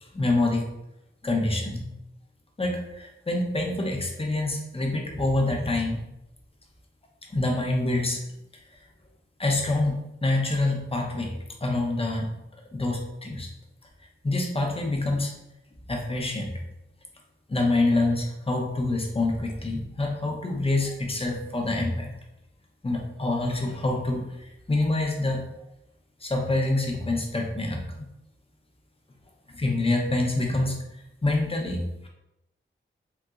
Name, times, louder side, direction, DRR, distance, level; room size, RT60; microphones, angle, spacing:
voice 1, 0.0-0.7 1.2-1.9 2.6-6.0 7.3-8.2 9.4-11.3 11.6-12.3 12.7-13.5 14.2-15.4 15.9-16.6 17.5-22.1 22.8-25.4 26.2-27.8 29.5-30.8 31.2-32.1, left 2 dB, 25° left, 1 dB, 0.6 m, -26 dB
3.8 x 2.1 x 2.3 m, 0.88 s
wide cardioid pair, 65°, 21 cm